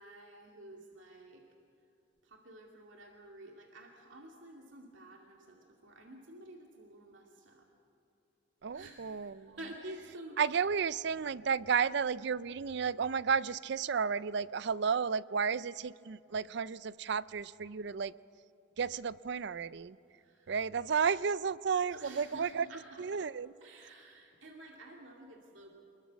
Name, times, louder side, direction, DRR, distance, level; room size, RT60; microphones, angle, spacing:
voice 1, 0.0-1.4 2.2-7.7 8.7-10.6 20.1-20.6 20.9-21.0 21.9-23.2 23.6-25.7, right 1 dB, 80° right, 2.4 m, -51 dB
voice 2, 8.6-9.6 10.4-18.1 18.8-20.0 20.5-22.6 23.0-23.5, right 6 dB, 60° right, 0.5 m, -32 dB
27.0 x 21.5 x 6.3 m
head